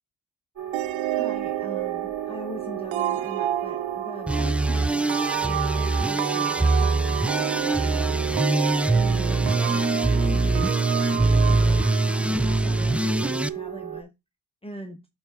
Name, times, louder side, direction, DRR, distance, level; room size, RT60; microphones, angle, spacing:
sound 1, 0.6-14.0, right 10 dB, 40° right, 3.9 m, -36 dB
sound 2, 0.7-13.1, right 13 dB, 85° right, 0.6 m, -30 dB
voice 1, 1.2-8.4 8.9-10.9 11.4-14.1 14.6-15.1, equal, 10° left, 1.0 m, -41 dB
sound 3, 4.3-13.5, right 2 dB, 5° right, 0.3 m, -23 dB
12.0 x 4.4 x 3.4 m
cardioid pair, 100°, 46 cm